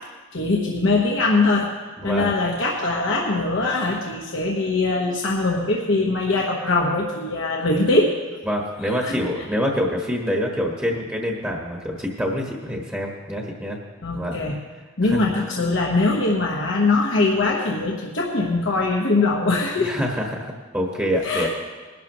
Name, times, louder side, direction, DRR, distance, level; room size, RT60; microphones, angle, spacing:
voice 1, 0.3-1.7 2.0-8.1 9.0-9.1 14.0-14.6 15.0-19.9 21.2-21.5, left 3 dB, 70° left, -2 dB, 1.3 m, -22 dB
voice 2, 2.0-2.3 8.5-13.8 14.2-14.4 15.0-15.2 19.8-21.5, equal, 10° right, -1 dB, 1.4 m, -26 dB
21.0 x 11.5 x 3.1 m, 1.4 s
head